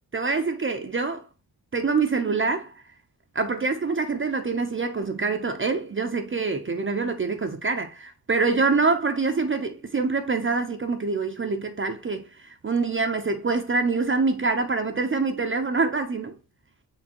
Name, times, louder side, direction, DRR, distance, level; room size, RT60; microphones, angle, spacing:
voice 1, 0.1-1.2 1.7-2.7 3.3-16.4, right 4 dB, 30° right, 0.6 m, -25 dB
4.4 x 3.3 x 2.9 m
cardioid pair, 65°, 39 cm